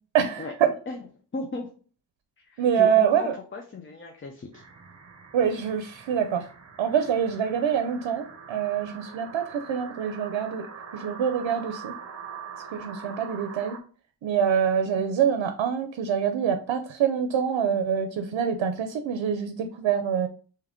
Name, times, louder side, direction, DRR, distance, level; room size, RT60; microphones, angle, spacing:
voice 1, 0.1-0.7 2.6-3.3 5.3-6.5 6.8-10.7 10.9-11.9 12.7-13.8 14.2-20.3, right 8 dB, 85° right, 8 dB, 0.6 m, -25 dB
voice 2, 1.3-1.7 2.5-4.6, left 3 dB, 30° left, 3 dB, 0.5 m, -36 dB
sound 1, 4.5-13.8, right 6 dB, 35° right, 0.8 m, -43 dB
3.5 x 2.8 x 3.6 m, 0.40 s
wide cardioid pair, 100°, 44 cm